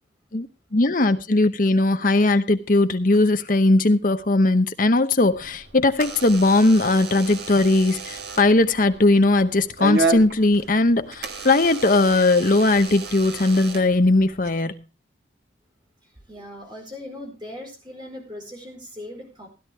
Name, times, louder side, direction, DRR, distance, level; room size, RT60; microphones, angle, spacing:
voice 1, 0.3-14.8, left 2 dB, 45° left, 0.9 m, -19 dB
Door / Alarm, 5.2-14.5, right 3 dB, 55° right, 1.6 m, -32 dB
voice 2, 16.3-19.5, left 1 dB, 25° right, 4.6 m, -39 dB
16.0 x 11.0 x 3.5 m
head